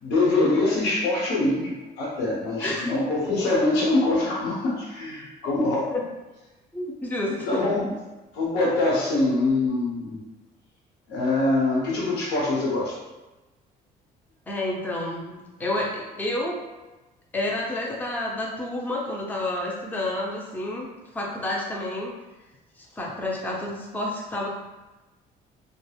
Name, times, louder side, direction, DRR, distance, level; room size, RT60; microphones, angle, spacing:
voice 1, 0.0-5.9 7.5-7.9 8.3-10.2 11.1-13.0, left 2 dB, 85° left, -4 dB, 0.9 m, -24 dB
voice 2, 2.6-2.9 5.9-6.0 6.7-7.7 14.5-16.6 17.3-20.9 21.1-22.1 22.8-24.5, left 1 dB, 10° left, -2 dB, 0.5 m, -29 dB
3.2 x 2.1 x 2.3 m, 1.1 s
cardioid pair, 110°, 17 cm